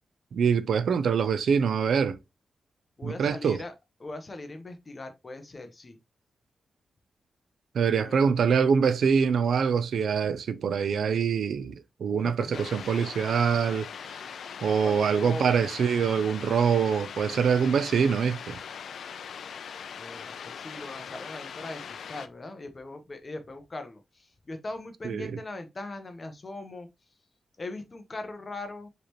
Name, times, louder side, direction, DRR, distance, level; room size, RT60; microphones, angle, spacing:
voice 1, 0.3-2.2 3.0-3.6 7.7-13.9 14.6-18.6 25.0-25.3, right 6 dB, 75° right, 0.4 m, -24 dB
voice 2, 3.0-3.7 4.0-6.0 8.0-8.3 12.1-13.3 14.8-15.6 20.0-21.8 22.1-26.9 27.6-28.9, left 2 dB, 25° left, 0.8 m, -40 dB
sound 1, 12.5-22.3, left 7 dB, 80° left, 0.4 m, -41 dB
4.8 x 3.3 x 2.9 m
wide cardioid pair, 165°, 0 cm